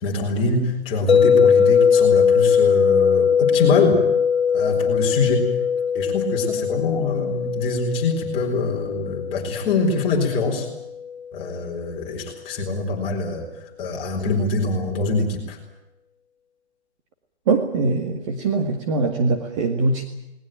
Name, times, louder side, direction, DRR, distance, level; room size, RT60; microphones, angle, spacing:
voice 1, 0.0-4.0 4.5-5.5 5.9-10.7 11.3-13.5 13.8-15.6, left 3 dB, 15° left, 0 dB, 4.1 m, -24 dB
sound 1, 1.1-11.2, left 7 dB, 75° left, 1.8 m, -20 dB
voice 2, 17.5-20.0, right 3 dB, 30° right, 4 dB, 2.0 m, -22 dB
20.5 x 20.0 x 9.1 m, 0.89 s
hypercardioid pair, 160°, 33 cm